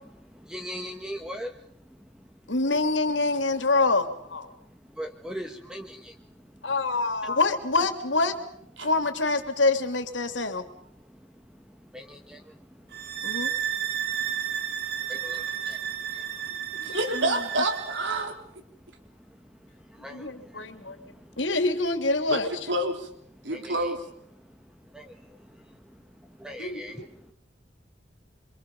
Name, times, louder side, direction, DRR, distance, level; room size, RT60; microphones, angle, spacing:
voice 1, 0.3-1.6 4.9-6.1 11.8-13.2 13.9-14.4 14.9-16.6 19.9-21.4 23.5-23.9 24.9-25.6 26.4-27.1, equal, 5° right, 4 dB, 1.5 m, -41 dB
voice 2, 2.5-4.5 6.6-8.4 8.8-10.6 13.2-13.5 16.8-17.4 20.1-21.0 21.4-22.5 26.6-27.1, left 3 dB, 85° left, 8 dB, 2.9 m, -26 dB
sound 1, 12.9-18.3, right 9 dB, 55° right, 2.3 m, -32 dB
voice 3, 16.8-18.3 22.3-23.1 23.4-24.0, right 1 dB, 80° right, 5 dB, 3.9 m, -28 dB
28.0 x 25.5 x 5.4 m, 0.72 s
head